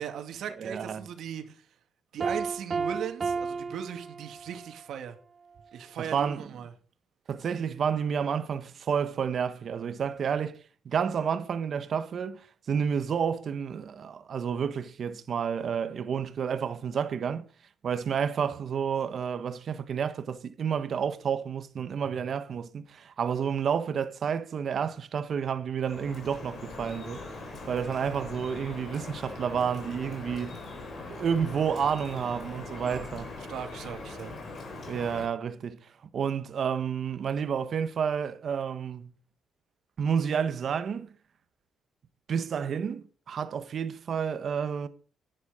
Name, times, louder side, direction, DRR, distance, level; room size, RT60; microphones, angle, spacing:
voice 1, 0.0-1.7 2.1-5.2 5.7-6.7 32.8-33.1 33.4-34.3, right 8 dB, 70° right, 2.3 m, -38 dB
voice 2, 0.6-1.1 6.0-6.5 7.3-10.6 10.8-17.5 17.8-30.6 31.1-33.3 34.9-39.1 40.0-41.1 42.3-44.9, right 7 dB, 50° right, 1.3 m, -30 dB
Piano, 2.2-4.8, right 5 dB, 30° right, 1.1 m, -32 dB
Drip, 25.8-35.3, left 3 dB, 45° left, 4.2 m, -41 dB
10.5 x 10.5 x 5.0 m
cardioid pair, 125°, 0 cm